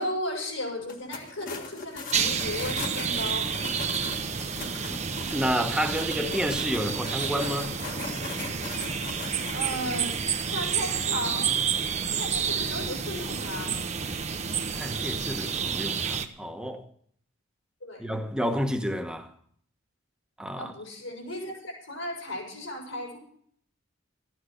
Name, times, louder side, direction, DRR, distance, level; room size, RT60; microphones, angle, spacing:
voice 1, 0.0-3.5 9.5-11.6 12.1-13.7 17.8-18.0 20.6-23.2, left 1 dB, 75° left, 6.5 m, -35 dB
sound 1, 0.8-10.1, left 3 dB, 40° left, 1.7 m, -40 dB
sound 2, 2.1-16.3, right 6 dB, 35° right, 0.9 m, -30 dB
voice 2, 5.3-7.7 14.7-16.8 18.0-19.3 20.4-20.7, equal, 5° right, 1.2 m, -30 dB
14.0 x 10.0 x 6.5 m
head